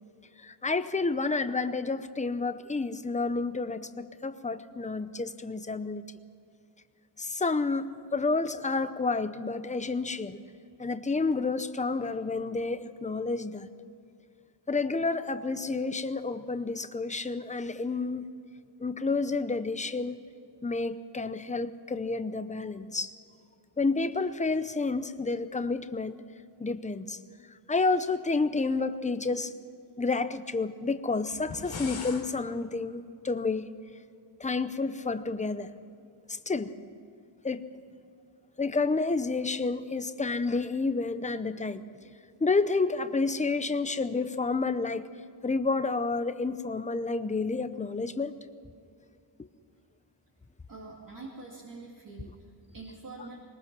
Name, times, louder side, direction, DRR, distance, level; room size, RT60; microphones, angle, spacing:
voice 1, 0.4-6.0 7.2-10.4 10.8-13.7 14.7-18.2 18.8-20.2 20.6-23.1 23.8-26.2 26.6-27.2 27.7-29.5 30.0-33.7 34.4-35.7 36.3-36.7 37.4-37.6 38.6-41.8 42.4-45.1 45.4-48.3, left 3 dB, 15° left, 11 dB, 0.6 m, -30 dB
sound 1, 31.3-32.3, left 4 dB, 85° left, 3.2 m, -39 dB
voice 2, 50.7-53.4, right 3 dB, 45° right, -3 dB, 2.4 m, -45 dB
21.5 x 20.5 x 6.0 m, 2.4 s
wide cardioid pair, 175°, 46 cm